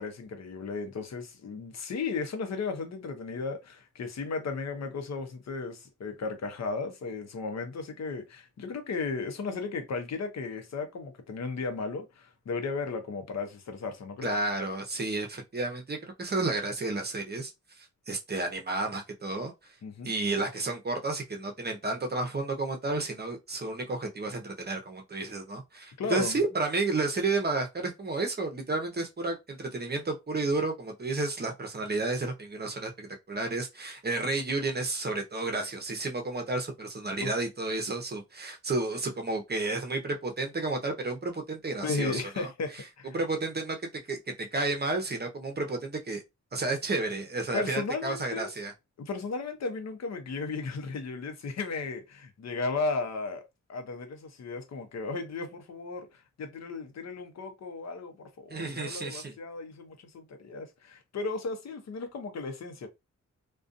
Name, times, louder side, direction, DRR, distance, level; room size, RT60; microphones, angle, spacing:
voice 1, 0.0-14.3 19.8-20.1 26.0-26.4 37.2-37.4 41.8-43.2 47.5-48.5 49.0-53.4 53.7-62.9, left 4 dB, 60° left, 0.7 m, -35 dB
voice 2, 14.2-17.5 17.8-19.5 20.0-42.8 43.1-46.2 46.5-48.7 58.5-59.3, right 3 dB, 35° right, 0.7 m, -31 dB
2.5 x 2.3 x 2.5 m
cardioid pair, 70°, 30 cm